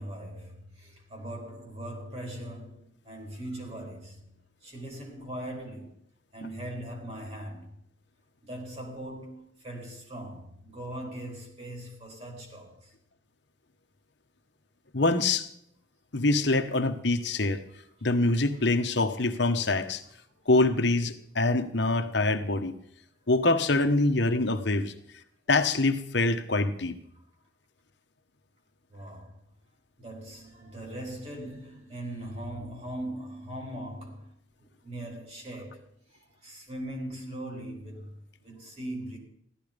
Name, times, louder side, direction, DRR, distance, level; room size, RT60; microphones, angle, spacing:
voice 1, 0.0-6.0 6.3-7.8 8.4-12.9 17.7-18.1 20.4-20.5 28.9-29.3 30.0-34.3 34.6-39.2, right 1 dB, 30° right, 4.2 m, -40 dB
voice 2, 14.9-15.5 16.1-17.6 18.0-20.0 20.5-22.7 23.3-24.9 25.5-27.0, left 2 dB, 60° left, 1.2 m, -25 dB
15.5 x 13.0 x 5.2 m
head